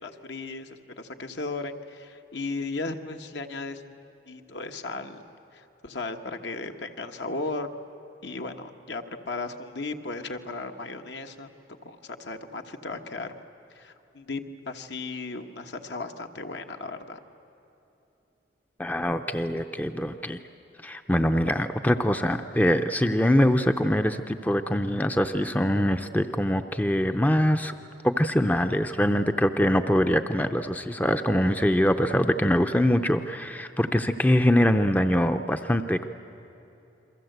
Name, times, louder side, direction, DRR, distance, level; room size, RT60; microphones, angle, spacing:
voice 1, 0.0-4.0 4.3-5.2 5.5-7.7 8.2-11.5 11.8-13.3 13.7-17.2, left 3 dB, 70° left, 5 dB, 1.3 m, -36 dB
voice 2, 18.8-20.4 20.8-27.7 28.0-36.0, equal, 10° left, 8 dB, 0.5 m, -23 dB
28.5 x 23.0 x 8.0 m, 3.0 s
head